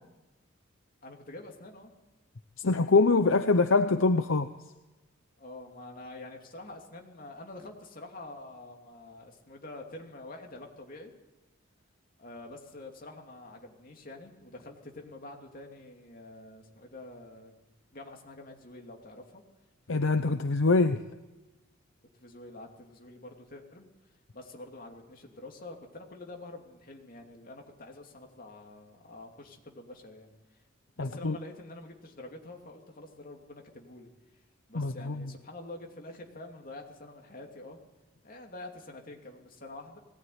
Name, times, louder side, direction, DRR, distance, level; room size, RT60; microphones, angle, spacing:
voice 1, 1.0-1.9 5.4-11.1 12.2-17.5 17.9-19.4 22.1-23.9 24.3-30.6 31.0-34.1 34.7-37.8 38.2-40.0, left 2 dB, 40° left, 1 dB, 2.9 m, -47 dB
voice 2, 2.6-4.5 19.9-21.0 31.0-31.4 34.8-35.3, left 3 dB, 65° left, 9 dB, 0.8 m, -24 dB
21.0 x 17.0 x 9.5 m, 1.1 s
head